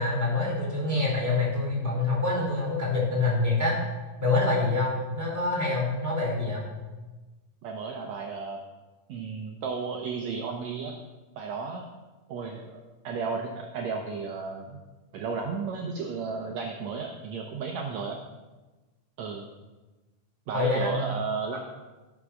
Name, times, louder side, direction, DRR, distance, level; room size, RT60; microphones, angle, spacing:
voice 1, 0.0-3.8 4.2-6.6 20.5-20.9, left 3 dB, 5° right, -4 dB, 4.1 m, -26 dB
voice 2, 7.6-8.6 9.1-11.0 11.4-11.9 12.3-14.8 15.1-18.2 19.2-19.5 20.5-21.6, right 5 dB, 70° right, 2 dB, 2.0 m, -33 dB
13.5 x 7.1 x 6.3 m, 1.2 s
omnidirectional pair, 3.6 m